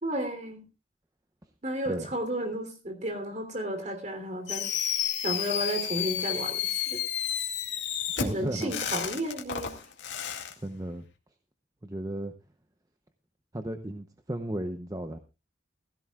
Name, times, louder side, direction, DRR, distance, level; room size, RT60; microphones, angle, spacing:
voice 1, 0.0-0.6 1.6-4.7 5.2-7.0 8.2-9.8, right 1 dB, 40° right, 6 dB, 3.3 m, -33 dB
Fireworks, 4.5-10.5, left 9 dB, 85° left, 2.1 m, -31 dB
voice 2, 8.2-8.7 10.6-11.0 11.8-12.3 13.5-15.2, right 1 dB, 20° right, 7 dB, 0.8 m, -34 dB
16.5 x 15.5 x 2.4 m, 0.29 s
head